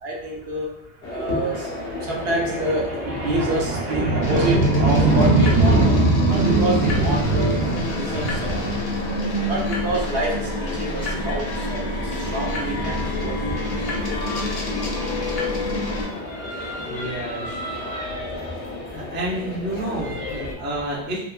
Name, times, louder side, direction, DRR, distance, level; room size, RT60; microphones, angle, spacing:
voice 1, 0.0-0.7 1.1-14.1 14.6-14.7 17.9-18.1 18.4-18.6 20.0-20.1 20.6-20.7, right 2 dB, 65° right, -2 dB, 0.8 m, -23 dB
sound 1, 1.0-20.5, left 2 dB, 90° left, 1.0 m, -34 dB
sound 2, 4.2-16.1, left 1 dB, 65° left, 0.9 m, -28 dB
sound 3, 11.6-20.5, left 3 dB, 45° left, 0.6 m, -36 dB
voice 2, 16.8-17.6 18.9-21.2, right 1 dB, 15° right, -5 dB, 0.4 m, -29 dB
2.8 x 2.1 x 2.3 m, 0.86 s
omnidirectional pair, 1.1 m